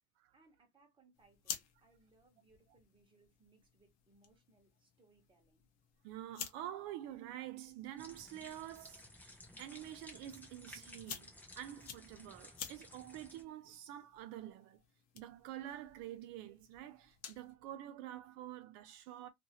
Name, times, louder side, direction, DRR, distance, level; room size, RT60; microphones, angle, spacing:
voice 1, 0.3-5.7, right 3 dB, 10° right, 0.9 m, -70 dB
sound 1, 1.1-17.5, left 8 dB, 40° left, 0.7 m, -53 dB
voice 2, 6.0-11.3 11.6-14.8 15.1-19.3, right 12 dB, 60° right, 0.5 m, -48 dB
sound 2, 8.0-13.4, left 1 dB, 5° left, 0.3 m, -56 dB
2.6 x 2.6 x 2.8 m
cardioid pair, 145°, 43 cm